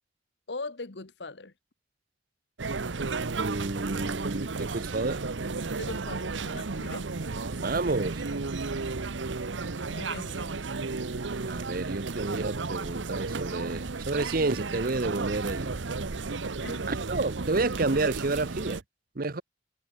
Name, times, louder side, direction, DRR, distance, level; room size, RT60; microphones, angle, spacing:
voice 1, 0.5-1.5 5.8-7.1 9.9-10.5 16.6-16.9, left 3 dB, 65° left, 1.3 m, -40 dB
sound 1, 2.6-18.8, right 3 dB, 85° right, 1.0 m, -33 dB
voice 2, 3.4-5.2 7.6-8.2 11.4-15.7 16.9-18.8 19.2-19.4, right 3 dB, 50° right, 0.9 m, -30 dB
head